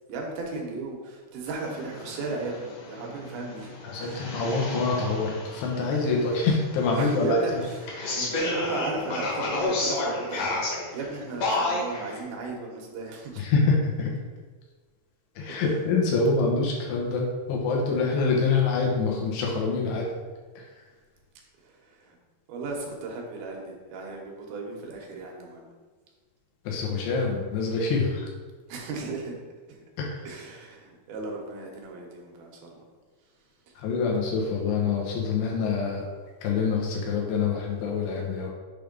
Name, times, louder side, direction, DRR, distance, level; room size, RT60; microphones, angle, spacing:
voice 1, 0.1-3.7 4.0-4.3 7.0-10.6 10.9-13.5 15.5-15.6 21.6-22.2 22.5-25.7 28.7-29.4 29.7-29.8 30.3-32.8, right 3 dB, 70° right, 0 dB, 2.7 m, -36 dB
sound 1, 1.5-12.2, left 2 dB, 60° left, 1.8 m, -32 dB
voice 2, 3.8-7.6 13.4-14.1 15.4-20.1 20.6-20.7 26.6-28.3 30.0-30.3 33.8-36.1 36.4-38.5, left 4 dB, 90° left, -1 dB, 3.3 m, -26 dB
7.6 x 3.4 x 5.2 m, 1.4 s
omnidirectional pair, 4.7 m